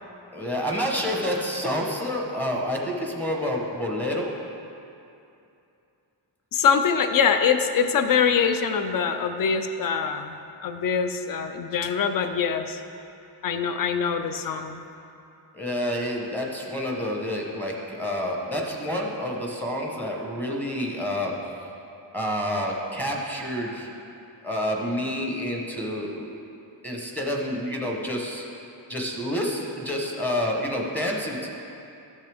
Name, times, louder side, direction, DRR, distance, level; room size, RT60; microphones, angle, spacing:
voice 1, 0.3-4.3 15.5-21.5 22.1-23.9 24.4-26.3 26.8-28.5 28.9-31.5, equal, 5° left, -1 dB, 0.9 m, -28 dB
voice 2, 6.5-10.4 10.6-12.8 13.4-14.8, left 6 dB, 50° left, 8 dB, 0.5 m, -23 dB
13.5 x 6.4 x 3.5 m, 2.7 s
wide cardioid pair, 170°, 46 cm